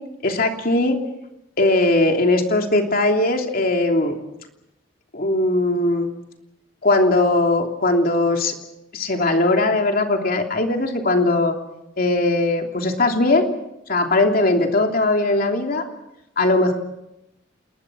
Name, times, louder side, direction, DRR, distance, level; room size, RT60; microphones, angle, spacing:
voice 1, 0.2-1.0 1.6-4.2 5.1-6.1 6.8-8.5 8.9-11.5 12.0-13.5 13.9-15.8 16.4-16.7, left 2 dB, 50° left, 3 dB, 3.1 m, -19 dB
29.0 x 21.5 x 6.3 m, 0.86 s
head